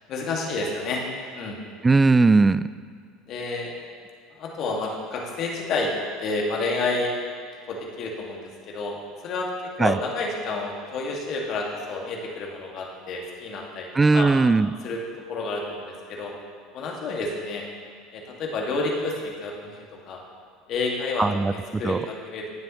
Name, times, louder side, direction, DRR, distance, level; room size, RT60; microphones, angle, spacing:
voice 1, 0.1-1.0 1.3-1.6 3.3-3.7 4.3-5.9 6.2-7.1 7.7-9.0 9.2-9.5 9.8-14.3 14.8-15.0 15.3-16.3 16.7-17.6 18.1-19.8 20.1-20.2 20.7-22.5, left 3 dB, 50° left, -1 dB, 2.0 m, -29 dB
voice 2, 1.8-2.7 9.8-10.0 13.9-14.7 21.2-22.1, right 3 dB, 20° right, 16 dB, 0.3 m, -19 dB
16.5 x 7.5 x 3.1 m, 2.1 s
hypercardioid pair, 70°, 0 cm